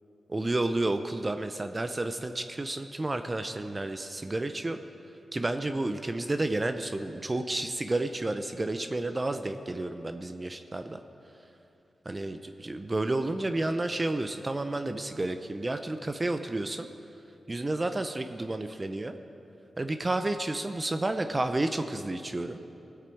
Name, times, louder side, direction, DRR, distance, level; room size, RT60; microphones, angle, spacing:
voice 1, 0.3-4.8 5.3-11.0 12.0-16.9 17.5-19.2 19.8-22.6, right 2 dB, 35° right, 8 dB, 0.6 m, -31 dB
19.0 x 8.2 x 4.6 m, 2.8 s
cardioid pair, 45°, 0 cm